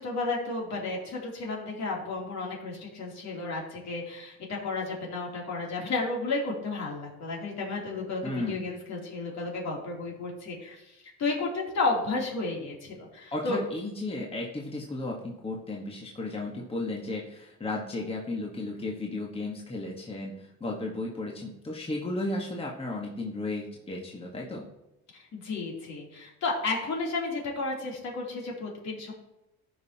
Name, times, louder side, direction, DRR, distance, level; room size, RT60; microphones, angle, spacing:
voice 1, 0.0-13.6 25.1-29.1, left 3 dB, 55° left, -2 dB, 2.9 m, -32 dB
voice 2, 8.2-8.6 13.3-24.7, left 2 dB, 15° left, -1 dB, 1.3 m, -34 dB
14.0 x 5.4 x 2.8 m, 0.92 s
supercardioid pair, 90°, 33 cm